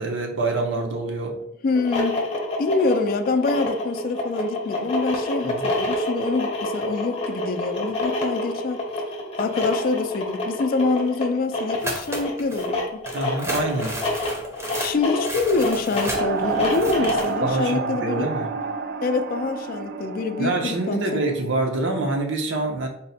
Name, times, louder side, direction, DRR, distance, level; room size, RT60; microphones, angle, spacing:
voice 1, 0.0-1.4 5.4-5.7 13.1-14.0 17.4-18.5 20.4-22.9, right 2 dB, 75° right, 0.7 m, -26 dB
voice 2, 1.6-2.3 2.6-8.8 9.4-13.0 14.8-18.3 19.0-21.2, left 3 dB, 45° left, 0.3 m, -25 dB
sound 1, 1.7-17.4, left 1 dB, 30° left, 0.8 m, -28 dB
sound 2, 11.8-12.7 13.0-17.3, right 1 dB, 15° right, 0.6 m, -32 dB
sound 3, 16.1-22.2, right 5 dB, 50° right, 0.3 m, -30 dB
4.0 x 2.1 x 4.1 m
head